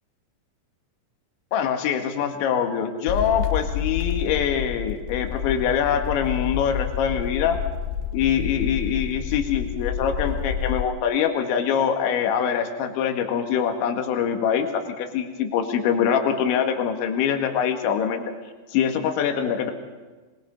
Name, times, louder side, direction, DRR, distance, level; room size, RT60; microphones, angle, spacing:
voice 1, 1.5-7.6 8.1-18.2 18.7-19.7, left 8 dB, 70° left, 5 dB, 3.9 m, -24 dB
sound 1, 3.1-10.8, left 9 dB, 85° left, 3.7 m, -29 dB
23.5 x 23.0 x 5.3 m, 1.3 s
omnidirectional pair, 5.9 m